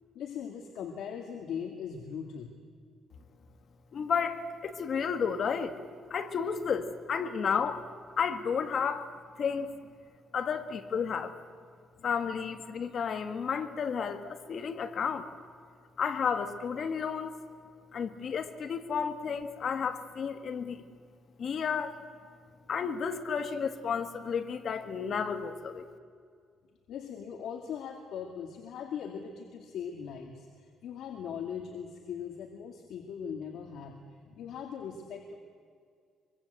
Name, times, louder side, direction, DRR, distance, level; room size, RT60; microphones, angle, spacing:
voice 1, 0.2-2.5 26.9-34.0 34.2-35.4, left 7 dB, 70° left, 4 dB, 2.1 m, -40 dB
voice 2, 3.9-5.8 6.1-7.8 8.2-9.1 9.4-9.7 10.3-11.3 12.0-15.3 16.0-17.3 17.9-20.8 21.4-22.0 22.7-25.9, left 6 dB, 45° left, 8 dB, 1.8 m, -32 dB
24.0 x 23.5 x 8.0 m, 2.1 s
cardioid pair, 135°, 0 cm